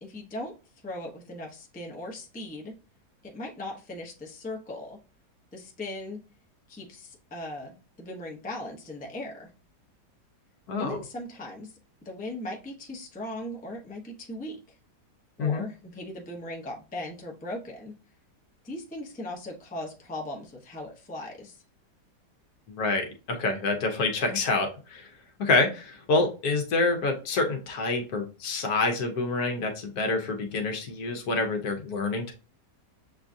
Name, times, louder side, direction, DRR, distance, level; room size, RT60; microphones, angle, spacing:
voice 1, 0.0-0.5 0.8-2.7 3.2-5.0 5.5-6.2 6.7-9.5 10.8-11.7 12.0-14.8 15.4-17.9 18.6-21.6, left 1 dB, 10° left, 0 dB, 0.6 m, -38 dB
voice 2, 10.7-11.0 15.4-15.6 22.7-25.1 25.4-32.3, left 3 dB, 70° left, 3 dB, 1.3 m, -27 dB
6.9 x 2.4 x 2.6 m, 0.33 s
omnidirectional pair, 1.8 m